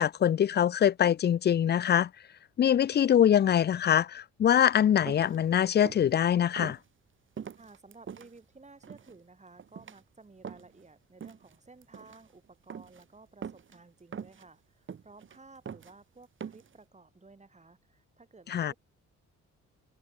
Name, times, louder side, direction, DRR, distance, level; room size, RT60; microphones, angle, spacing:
voice 1, 0.0-2.1 2.6-6.8 18.5-18.7, left 9 dB, 35° left, 0.4 m, -24 dB
sound 1, 5.1-5.4 5.8-6.1 6.6-6.8 7.4-8.3 8.8-9.1 9.6-10.0 10.4-10.8 11.2-11.6 11.8-12.2 12.7-13.0 13.4-13.8 14.1-14.5 14.9-15.4 15.7-15.9 16.4-16.7, right 7 dB, 40° right, 1.4 m, -42 dB
voice 2, 7.6-18.7, right 3 dB, 25° right, 7.8 m, -55 dB
cardioid pair, 90°, 30 cm